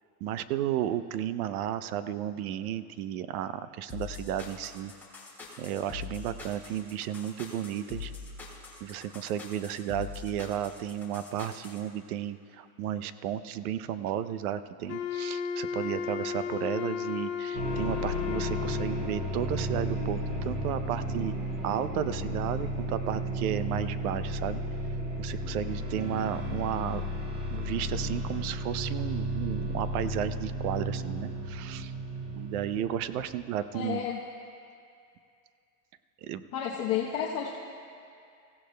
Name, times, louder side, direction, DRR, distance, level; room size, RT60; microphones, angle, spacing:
voice 1, 0.2-4.9 5.6-8.1 8.8-21.3 21.6-24.6 25.2-27.0 27.5-31.9 32.3-34.0 36.2-36.4, right 10 dB, 65° right, 13 dB, 0.7 m, -33 dB
sound 1, 3.9-11.8, left 5 dB, 5° left, 1.8 m, -43 dB
Wind instrument woodwind instrument, 14.9-19.2, left 7 dB, 60° left, 1.0 m, -34 dB
sound 2, 17.5-33.4, equal, 15° right, 0.3 m, -33 dB
voice 2, 33.7-34.2 36.5-37.6, left 8 dB, 30° left, -3 dB, 0.9 m, -31 dB
24.5 x 16.0 x 2.2 m, 2.4 s
supercardioid pair, 160°, 47 cm